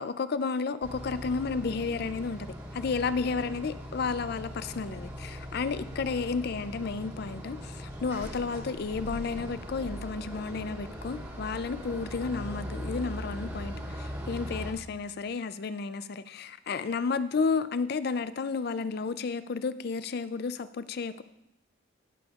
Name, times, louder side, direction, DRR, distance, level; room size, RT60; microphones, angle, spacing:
voice 1, 0.0-21.2, left 4 dB, 50° left, 0.4 m, -32 dB
sound 1, 0.8-14.7, equal, 15° right, 1.5 m, -40 dB
17.5 x 6.9 x 2.4 m
head